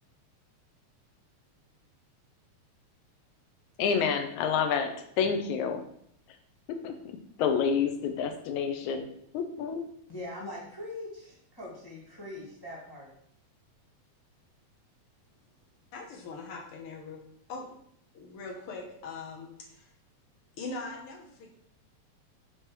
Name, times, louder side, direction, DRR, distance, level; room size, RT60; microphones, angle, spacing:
voice 1, 3.8-5.8 6.7-9.1 9.3-9.9, left 6 dB, 85° left, 7 dB, 2.1 m, -29 dB
voice 2, 10.1-13.1, left 1 dB, 20° left, -5 dB, 0.6 m, -42 dB
voice 3, 15.9-17.2 17.5-17.7 18.1-19.9 20.6-21.5, left 3 dB, 60° left, 0 dB, 1.6 m, -41 dB
7.3 x 3.3 x 4.6 m, 0.69 s
omnidirectional pair, 3.3 m